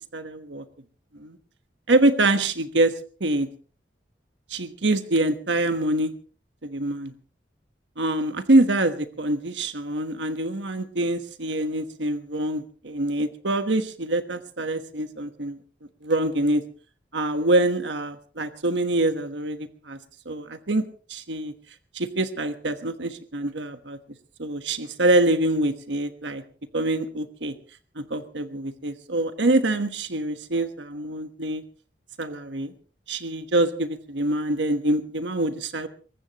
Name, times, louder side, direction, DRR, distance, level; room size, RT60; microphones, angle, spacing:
voice 1, 0.1-0.6 1.2-1.4 1.9-2.9 3.2-3.5 4.5-6.1 6.6-7.1 8.0-15.6 16.0-16.6 17.1-20.0 20.2-21.5 21.9-24.0 24.4-26.4 26.7-27.5 28.0-31.6 32.2-32.7 33.1-35.9, right 1 dB, 75° right, 9 dB, 1.3 m, -25 dB
22.5 x 19.0 x 3.0 m, 0.40 s
head